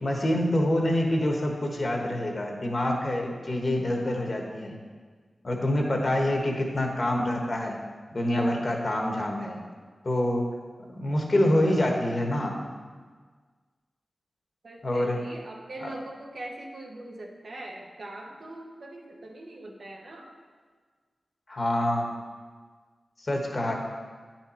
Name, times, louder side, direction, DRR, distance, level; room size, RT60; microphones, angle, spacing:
voice 1, 0.0-4.8 5.4-7.8 8.1-9.6 10.0-10.5 11.0-12.6 14.8-15.2 15.8-15.9 21.5-22.0 23.2-23.7, left 1 dB, 50° left, 1 dB, 1.3 m, -26 dB
voice 2, 14.6-20.3, right 1 dB, 75° right, 0 dB, 1.1 m, -41 dB
9.4 x 4.5 x 4.4 m, 1.5 s
cardioid pair, 50°, 0 cm